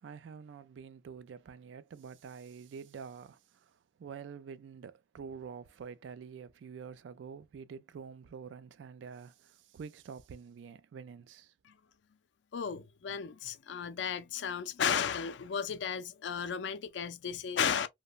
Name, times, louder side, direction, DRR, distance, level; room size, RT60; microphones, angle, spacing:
voice 1, 0.0-3.7 4.0-11.5, right 6 dB, 80° right, 0.3 m, -47 dB
voice 2, 12.5-17.9, left 7 dB, 75° left, 0.4 m, -34 dB
2.9 x 2.1 x 2.3 m
head